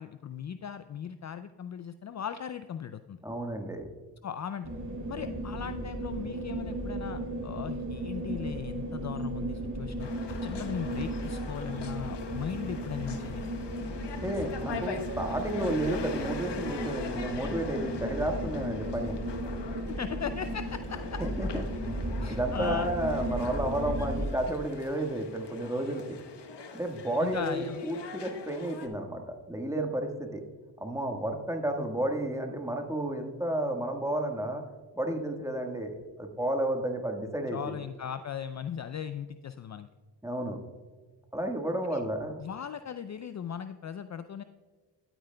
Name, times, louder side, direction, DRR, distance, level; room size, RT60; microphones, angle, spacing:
voice 1, 0.0-3.2 4.2-4.7 5.1-10.1 10.4-13.4 19.9-21.3 22.2-22.9 23.9-24.1 27.2-27.8 37.5-39.9 41.8-42.0 42.4-44.4, left 8 dB, 40° left, 11 dB, 0.4 m, -38 dB
voice 2, 3.2-3.9 14.2-19.2 21.2-21.9 22.3-26.2 26.7-30.4 30.8-34.6 34.9-37.8 40.2-40.6 41.3-42.4, right 1 dB, 5° right, 3 dB, 1.4 m, -32 dB
sound 1, 4.6-24.3, right 1 dB, 40° right, 2.3 m, -35 dB
sound 2, 10.0-28.9, left 5 dB, 70° left, 1.1 m, -43 dB
12.5 x 9.0 x 2.2 m, 1.5 s
cardioid pair, 60°, 44 cm